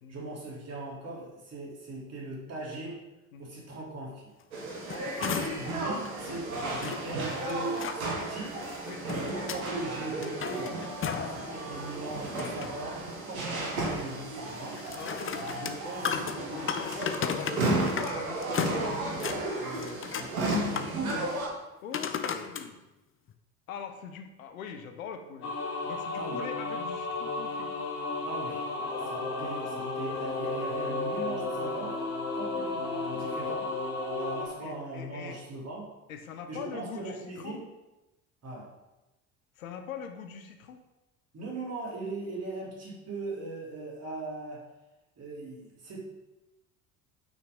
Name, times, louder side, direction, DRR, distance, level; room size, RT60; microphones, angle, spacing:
voice 1, 0.1-3.0 3.4-4.3 5.5-8.6 9.1-10.8 11.3-14.8 15.5-16.1 19.4-21.4 26.1-26.4 28.2-28.7 29.0-32.0 32.3-33.7 34.1-35.9 36.5-37.6 38.4-38.7 41.3-44.6 45.2-46.0, right 2 dB, 35° right, -3 dB, 3.8 m, -39 dB
sound 1, 4.5-21.5, right 2 dB, 80° right, 2.0 m, -34 dB
sound 2, 4.6-5.7 6.0-6.1 6.8-8.0 8.7-9.7 10.1-11.4 11.8-12.8 14.7-18.2 18.4-19.4 19.7-20.3 20.7-21.2 21.9-22.7 23.3-23.4, left 7 dB, 30° left, 0.9 m, -35 dB
voice 2, 15.0-15.8 16.0-16.2 16.5-18.7 21.8-22.8 23.7-27.7 34.6-35.4 36.1-37.6 39.6-40.8, left 7 dB, 75° left, 6 dB, 1.1 m, -43 dB
sound 3, 25.4-34.5, left 3 dB, 60° left, 3.4 m, -33 dB
9.2 x 6.1 x 5.3 m, 1.0 s
figure-of-eight pair, 60°, 42 cm